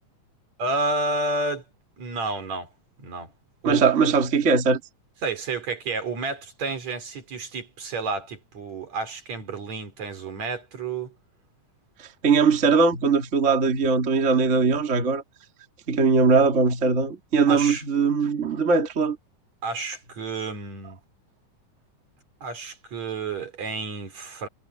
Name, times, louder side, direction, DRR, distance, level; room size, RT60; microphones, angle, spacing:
voice 1, 0.6-1.6 2.0-2.7 3.0-3.3 3.6-3.8 5.2-11.1 17.5-17.8 19.6-21.0 22.4-24.5, right 3 dB, 65° right, 4.8 m, -30 dB
voice 2, 3.6-4.8 12.0-15.2 15.9-19.2, right 4 dB, 25° right, 2.2 m, -20 dB
omnidirectional pair, 3.4 m